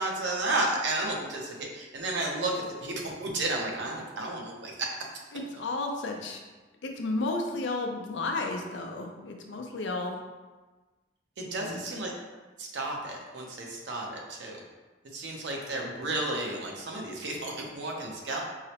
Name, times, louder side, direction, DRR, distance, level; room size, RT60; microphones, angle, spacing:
voice 1, 0.0-4.9 11.4-12.1 12.6-14.6 15.1-18.4, right 2 dB, 70° right, -1 dB, 0.6 m, -32 dB
voice 2, 5.3-6.4 6.8-10.2 11.4-11.8, left 2 dB, 85° left, 2 dB, 0.5 m, -33 dB
4.7 x 2.0 x 2.8 m, 1.2 s
head